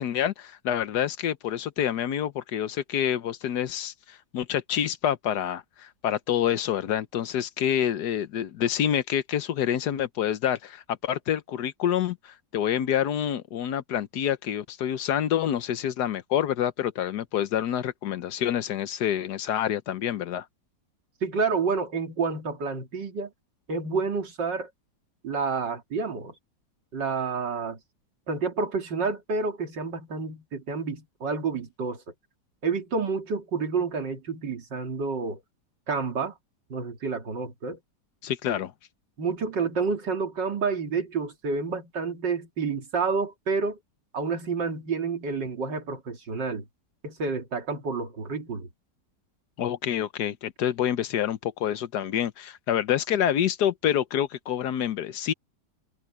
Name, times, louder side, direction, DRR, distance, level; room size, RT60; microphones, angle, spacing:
voice 1, 0.0-20.4 38.2-38.7 49.6-55.3, left 10 dB, 70° left, 1.4 m, -27 dB
voice 2, 21.2-23.3 23.7-24.7 25.2-26.3 26.9-27.8 28.3-32.0 32.6-35.4 35.9-36.3 36.7-37.8 39.2-43.8 44.1-46.7 47.0-48.7, right 4 dB, 85° right, 3.1 m, -29 dB
omnidirectional pair, 1.9 m